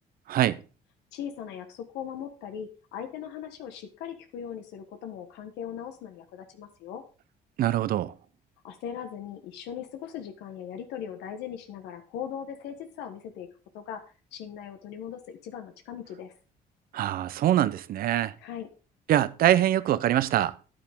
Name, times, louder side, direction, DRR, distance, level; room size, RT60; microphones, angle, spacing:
voice 1, 1.1-7.0 8.6-13.5 13.7-14.0 14.3-16.3 18.4-18.7, left 8 dB, 85° left, 1.4 m, -39 dB
voice 2, 7.6-8.1 16.9-18.3 19.1-20.5, right 12 dB, 60° right, 0.6 m, -23 dB
9.8 x 8.6 x 3.6 m
cardioid pair, 110°, 17 cm